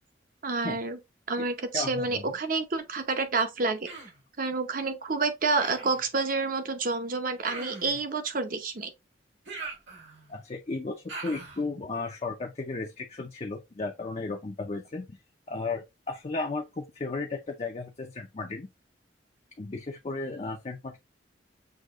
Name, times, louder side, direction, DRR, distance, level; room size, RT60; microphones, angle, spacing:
voice 1, 0.4-1.0 1.3-3.9 4.4-8.9, right 3 dB, 45° right, 0.8 m, -29 dB
voice 2, 1.7-2.4 10.3-15.2 15.5-18.7 19.6-21.0, left 3 dB, 35° left, 0.5 m, -34 dB
Human voice, 3.9-4.2 5.6-6.1 7.4-8.0 9.5-10.4 11.1-11.6, right 3 dB, 80° right, 2.1 m, -41 dB
6.3 x 2.7 x 2.4 m
head